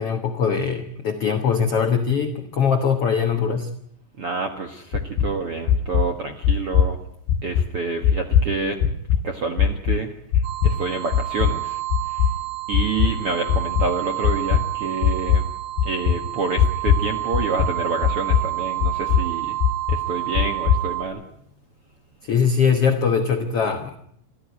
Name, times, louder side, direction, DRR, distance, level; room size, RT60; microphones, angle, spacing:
voice 1, 0.0-3.7 22.3-24.0, left 6 dB, 70° left, 6 dB, 1.3 m, -21 dB
voice 2, 4.2-7.0 7.4-8.8 9.2-12.3 12.7-15.4 15.8-19.5 19.9-21.2, right 4 dB, 60° right, 5 dB, 1.5 m, -28 dB
sound 1, 4.9-5.3 5.7-6.1 6.4-6.9 7.3-7.7 8.0-8.5 8.8-9.2 9.6-10.0 10.3-10.7 11.1-11.5 11.9-12.3 12.7-13.1 13.5-13.9 14.2-14.6 15.0-15.4 15.8-16.2 16.6-17.1 17.3-17.8 18.0-18.4 18.8-19.2 19.6-20.0 20.3-20.8, left 8 dB, 90° left, 3.2 m, -19 dB
sound 2, 10.4-21.0, right 17 dB, 80° right, 4.1 m, -30 dB
25.0 x 14.5 x 9.5 m, 0.72 s
omnidirectional pair, 4.8 m